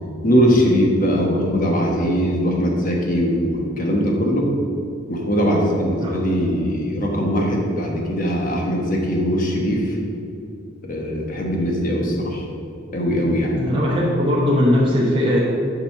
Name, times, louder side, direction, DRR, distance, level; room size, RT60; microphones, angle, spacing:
voice 1, 0.2-4.5 5.1-10.0 10.8-12.4 12.9-13.6, equal, 40° left, -1 dB, 1.3 m, -20 dB
voice 2, 6.0-6.5 13.6-15.4, left 1 dB, 25° right, -5 dB, 1.0 m, -19 dB
7.4 x 5.3 x 5.8 m, 2.6 s
head